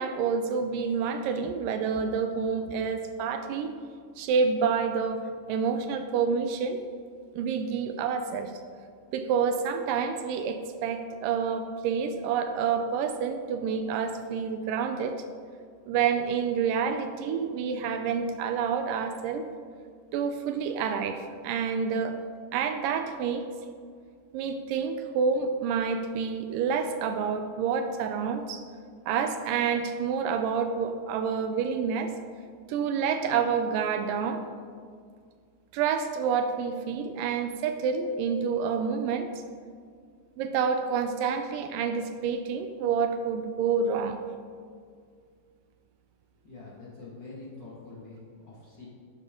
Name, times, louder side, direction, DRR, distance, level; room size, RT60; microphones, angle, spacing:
voice 1, 0.0-3.7 4.2-6.8 7.4-8.5 9.1-15.2 15.9-19.5 20.1-21.2 21.4-22.2 22.5-23.5 24.3-28.6 29.1-32.1 32.7-34.4 35.7-39.3 40.4-44.2, right 6 dB, 80° right, 8 dB, 2.2 m, -28 dB
voice 2, 46.4-48.9, left 3 dB, 40° left, -6 dB, 2.1 m, -45 dB
11.5 x 8.3 x 3.7 m, 2.1 s
omnidirectional pair, 3.9 m